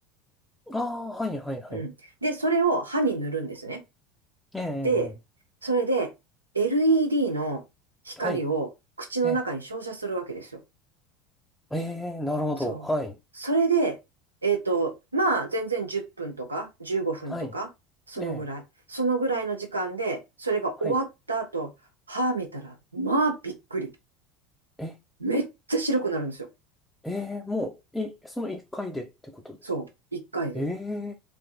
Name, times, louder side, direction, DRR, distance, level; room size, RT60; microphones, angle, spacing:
voice 1, 0.7-1.9 4.5-5.1 8.2-8.4 9.2-9.4 11.7-13.2 17.3-17.5 18.2-18.4 20.8-21.0 24.8-25.0 27.0-29.6 30.5-31.2, left 1 dB, 5° left, 0.4 m, -32 dB
voice 2, 2.2-3.8 4.8-5.1 5.6-6.1 6.5-7.6 8.0-8.7 9.0-10.6 12.6-12.8 13.4-14.0 14.4-17.7 18.1-18.6 18.9-21.7 22.1-23.9 25.2-26.5 29.6-30.6, right 3 dB, 85° right, 0.5 m, -27 dB
3.2 x 2.4 x 2.3 m
figure-of-eight pair, 70°, 0 cm